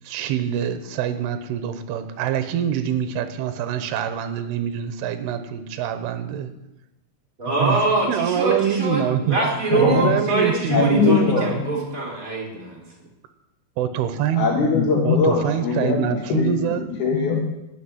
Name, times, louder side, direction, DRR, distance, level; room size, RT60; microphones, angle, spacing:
voice 1, 0.0-6.5 7.6-7.8 8.1-11.6 13.8-14.5 15.0-16.9, right 9 dB, 75° right, 9 dB, 2.9 m, -25 dB
voice 2, 7.4-12.8, right 3 dB, 20° right, -2 dB, 3.3 m, -24 dB
voice 3, 9.7-10.2 10.7-11.8 14.4-16.7 17.0-17.4, left 5 dB, 60° left, -2 dB, 2.4 m, -21 dB
13.0 x 6.8 x 9.8 m, 0.96 s
omnidirectional pair, 4.9 m